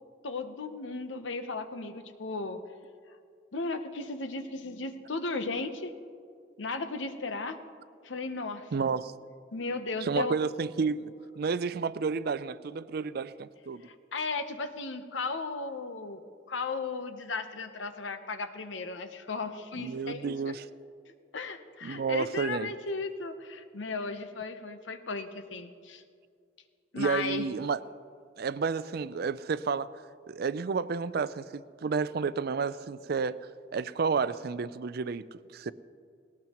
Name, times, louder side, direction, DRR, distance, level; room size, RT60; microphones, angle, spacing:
voice 1, 0.2-2.6 3.5-5.9 6.6-7.6 8.0-8.9 9.5-10.3 13.8-16.2 16.5-20.5 21.3-26.0 26.9-27.5, left 3 dB, 85° left, 0.9 m, -35 dB
voice 2, 8.7-9.1 10.0-13.8 19.8-20.7 21.8-22.7 27.0-27.8 28.4-33.4 33.7-35.3 35.5-35.7, right 5 dB, 55° right, 0.4 m, -31 dB
19.0 x 18.0 x 3.0 m
head